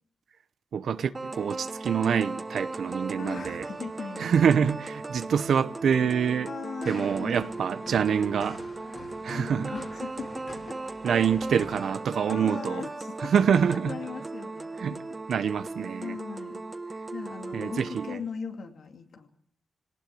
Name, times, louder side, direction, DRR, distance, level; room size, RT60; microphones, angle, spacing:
voice 1, 0.7-3.7 4.2-6.5 6.8-8.6 9.2-9.7 11.0-12.8 13.2-14.0 14.8-15.0 15.3-16.2 17.5-18.2, right 7 dB, 90° right, 0.8 m, -26 dB
sound 1, 1.1-18.1, right 3 dB, 30° right, 1.3 m, -38 dB
voice 2, 3.2-4.3 6.4-7.5 9.3-10.8 12.3-13.3 13.7-15.0 16.0-16.6 17.1-19.3, left 5 dB, 85° left, 2.4 m, -39 dB
sound 2, 6.8-12.0, left 3 dB, 50° left, 3.8 m, -47 dB
21.5 x 18.5 x 7.8 m
cardioid pair, 80°, 0 cm